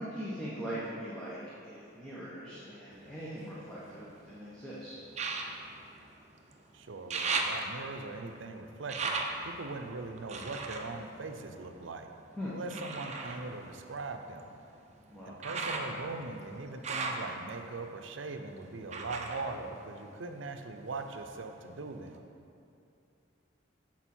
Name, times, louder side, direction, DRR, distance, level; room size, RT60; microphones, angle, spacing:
voice 1, 0.0-5.0 12.4-12.6 15.1-15.4, equal, 5° left, -9 dB, 1.1 m, -41 dB
sound 1, 2.9-4.3 5.1-6.6 6.9-12.0 12.7-20.5 20.8-21.7 22.2-22.3, right 3 dB, 35° right, 0.7 m, -38 dB
voice 2, 6.7-12.1 12.5-14.5 15.3-22.2, right 3 dB, 85° right, 6 dB, 0.6 m, -41 dB
8.9 x 6.1 x 4.4 m, 2.6 s
head